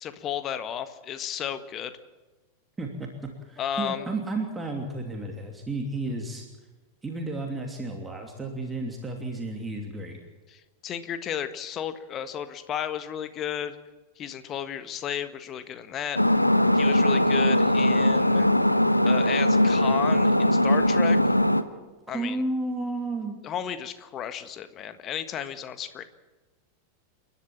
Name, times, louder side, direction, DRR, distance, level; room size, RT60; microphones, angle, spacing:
voice 1, 0.0-1.9 3.6-4.1 10.5-13.8 14.2-16.2 16.7-18.5 19.0-21.2 22.1-22.4 23.4-26.0, left 9 dB, 30° left, 11 dB, 1.6 m, -33 dB
voice 2, 2.8-3.1 3.5-6.4 7.0-10.2 22.1-23.4, right 2 dB, 10° right, 2 dB, 2.9 m, -32 dB
sound 1, 16.2-21.6, left 1 dB, 90° left, 0.9 m, -20 dB
29.5 x 11.5 x 8.8 m, 1.2 s
figure-of-eight pair, 90°, 0 cm